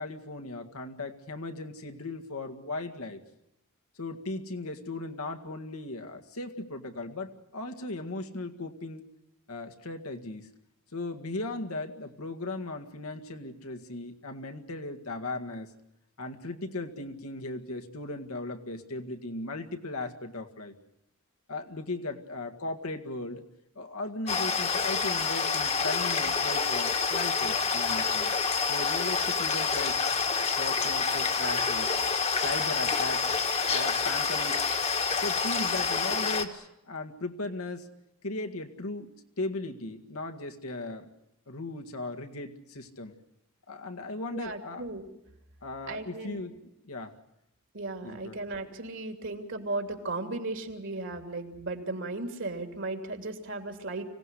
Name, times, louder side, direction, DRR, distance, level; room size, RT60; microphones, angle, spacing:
voice 1, 0.0-3.2 4.0-9.0 9.5-10.5 10.9-15.7 16.2-20.7 21.5-23.4 23.8-28.3 28.7-30.0 30.6-31.9 32.4-33.2 33.7-34.7 35.2-37.9 38.2-41.1 41.5-43.1 43.7-44.9 45.6-46.6 46.8-47.2 48.0-48.4, left 2 dB, 75° left, 4 dB, 2.0 m, -37 dB
sound 1, 24.3-36.4, left 5 dB, 30° left, 1.6 m, -28 dB
voice 2, 44.3-45.1 45.9-46.4 47.7-54.0, right 2 dB, 60° right, 5 dB, 3.0 m, -36 dB
25.0 x 17.5 x 9.9 m, 0.83 s
head